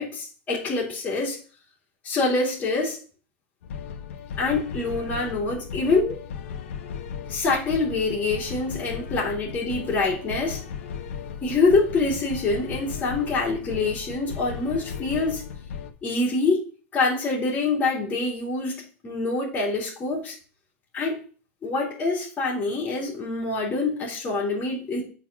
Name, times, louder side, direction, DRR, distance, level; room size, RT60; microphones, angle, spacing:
voice 1, 0.0-1.4 2.0-3.0 4.4-6.2 7.3-10.6 11.4-15.4 16.0-16.6 16.9-20.3 20.9-21.2 21.6-25.0, left 3 dB, 20° left, -3 dB, 2.6 m, -25 dB
sound 1, 3.6-15.9, left 7 dB, 85° left, 1.1 m, -36 dB
9.3 x 4.2 x 5.8 m, 0.40 s
supercardioid pair, 165°, 7 cm